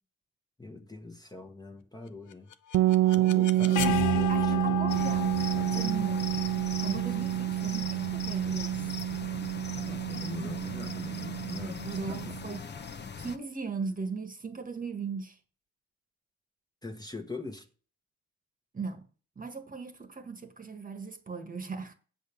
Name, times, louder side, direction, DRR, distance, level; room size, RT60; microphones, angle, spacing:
voice 1, 0.6-2.5 3.1-4.9 5.5-6.1 9.8-12.4 16.8-17.7, left 3 dB, 15° left, 1.3 m, -42 dB
sound 1, 2.3-8.2, left 11 dB, 85° left, 0.8 m, -35 dB
sound 2, 2.7-12.5, right 16 dB, 65° right, 0.4 m, -28 dB
voice 2, 3.5-3.9 4.3-5.4 5.7-6.2 6.8-8.9 11.6-12.6 13.2-15.4 18.7-19.1 19.3-21.9, right 4 dB, 25° right, 1.5 m, -38 dB
sound 3, 4.9-13.4, left 5 dB, 35° left, 1.0 m, -40 dB
8.1 x 5.2 x 7.0 m
cardioid pair, 90°, 30 cm